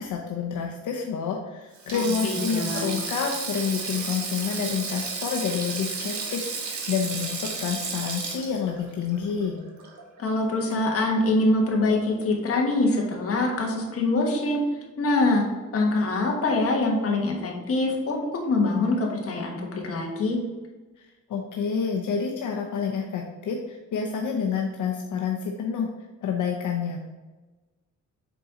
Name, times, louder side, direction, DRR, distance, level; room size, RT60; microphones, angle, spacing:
voice 1, 0.0-9.6 21.0-25.9 26.2-27.1, left 6 dB, 75° left, 1 dB, 0.7 m, -29 dB
Sink (filling or washing), 1.7-10.2 10.5-10.7 11.9-12.1, right 4 dB, 65° right, 1.2 m, -33 dB
voice 2, 1.9-2.9 10.2-14.6 15.0-15.4 15.7-20.4, left 2 dB, 45° left, 0 dB, 1.3 m, -24 dB
7.5 x 4.0 x 3.7 m, 1.2 s
wide cardioid pair, 175°, 31 cm